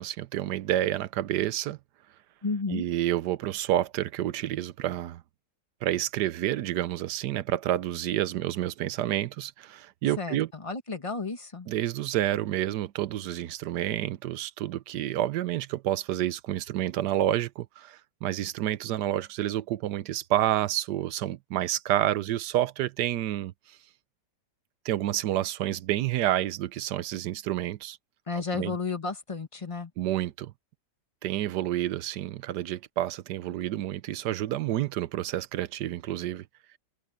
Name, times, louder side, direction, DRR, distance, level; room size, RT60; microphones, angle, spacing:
voice 1, 0.0-1.8 2.7-5.2 5.8-10.5 11.7-23.5 24.8-28.0 28.4-28.8 30.0-30.5 31.2-36.4, right 13 dB, 90° right, 1.3 m, -29 dB
voice 2, 2.4-2.9 10.2-11.7 28.3-29.9, left 4 dB, 20° left, 1.2 m, -32 dB
omnidirectional pair, 1.8 m